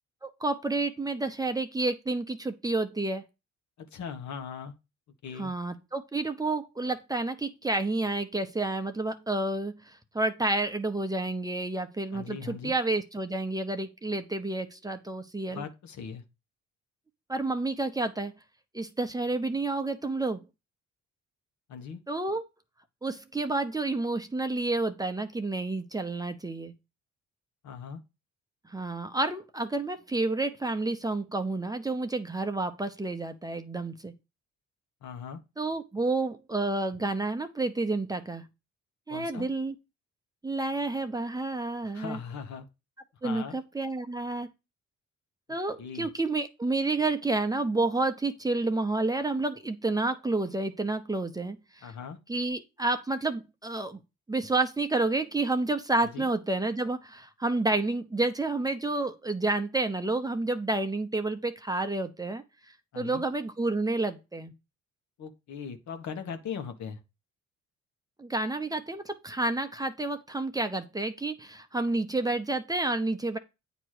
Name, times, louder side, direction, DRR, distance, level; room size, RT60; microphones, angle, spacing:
voice 1, 0.2-3.2 5.4-15.6 17.3-18.3 18.7-20.4 22.1-22.4 23.0-26.7 28.6-34.1 35.6-38.4 39.1-39.7 40.4-42.2 43.2-44.5 45.5-51.9 52.3-54.0 54.3-62.4 63.0-64.5 68.2-73.4, right 2 dB, 10° right, 0.8 m, -30 dB
voice 2, 3.8-4.7 5.2-5.5 12.1-12.7 15.5-16.2 21.7-22.0 27.6-28.0 35.0-35.4 39.1-39.5 41.8-42.7 43.2-43.6 45.8-46.1 51.8-52.2 56.0-56.3 62.9-63.2 65.2-67.0, left 6 dB, 70° left, 1.2 m, -39 dB
8.9 x 3.0 x 6.4 m
cardioid pair, 90°, 30 cm